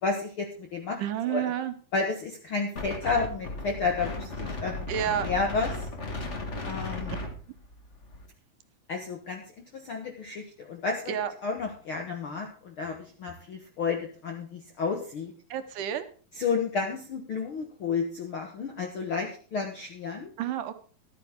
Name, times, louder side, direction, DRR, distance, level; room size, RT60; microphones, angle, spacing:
voice 1, 0.0-1.0 1.3-1.5 1.9-4.9 5.2-5.7 6.7-7.2 8.9-9.4 9.7-11.1 11.4-15.3 16.3-20.3, left 4 dB, 65° left, 3 dB, 1.3 m, -31 dB
voice 2, 1.0-1.7 4.9-5.3 11.1-11.3 15.5-16.1 20.4-20.7, right 10 dB, 75° right, 9 dB, 2.2 m, -30 dB
Wind, 2.7-8.2, left 2 dB, 85° left, 0.6 m, -36 dB
13.0 x 12.5 x 3.6 m, 0.41 s
omnidirectional pair, 4.0 m